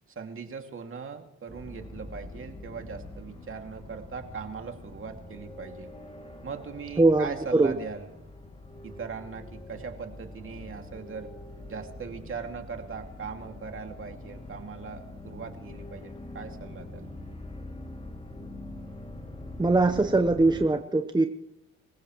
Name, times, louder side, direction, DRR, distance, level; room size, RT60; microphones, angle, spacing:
voice 1, 0.2-5.9 6.4-8.1 8.8-11.3 11.7-17.1, right 5 dB, 45° right, 4 dB, 2.3 m, -40 dB
sound 1, 1.5-20.7, left 2 dB, 20° left, 2.5 m, -44 dB
voice 2, 7.0-7.7 19.6-21.3, right 2 dB, 15° right, 6 dB, 1.0 m, -22 dB
25.5 x 16.0 x 3.1 m, 0.91 s
cardioid pair, 90°, 30 cm